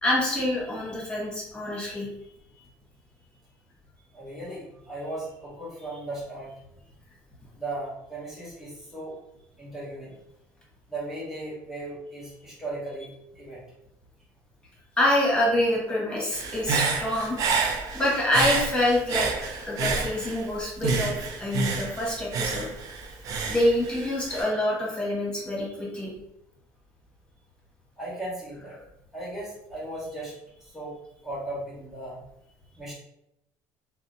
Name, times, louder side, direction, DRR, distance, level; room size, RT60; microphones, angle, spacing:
voice 1, 0.0-2.1 15.0-17.4 17.9-19.3 19.6-22.6 23.5-26.1, left 1 dB, 15° left, -4 dB, 1.1 m, -26 dB
voice 2, 4.1-6.5 7.5-9.2 9.6-10.1 10.9-13.1 13.3-13.6 28.0-28.8 29.1-30.3 30.6-31.0 31.2-32.2 32.7-33.0, right 2 dB, 5° right, -9 dB, 1.2 m, -36 dB
Human voice / Breathing, 16.3-20.5 20.8-24.4, right 4 dB, 55° right, 0.4 m, -29 dB
2.7 x 2.1 x 2.6 m, 0.82 s
cardioid pair, 115°, 7 cm